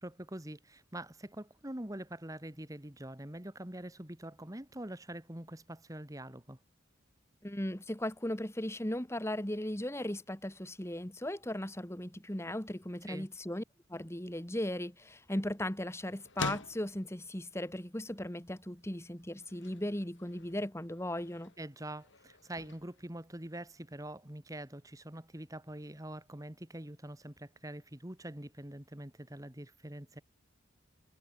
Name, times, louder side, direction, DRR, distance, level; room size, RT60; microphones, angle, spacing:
voice 1, 0.0-6.6 13.1-13.3 21.6-30.2, right 1 dB, 15° right, 1.7 m, -44 dB
voice 2, 7.4-13.6 13.9-21.5, left 1 dB, 15° left, 1.8 m, -37 dB
sound 1, 14.3-24.1, left 3 dB, 70° left, 3.4 m, -48 dB
head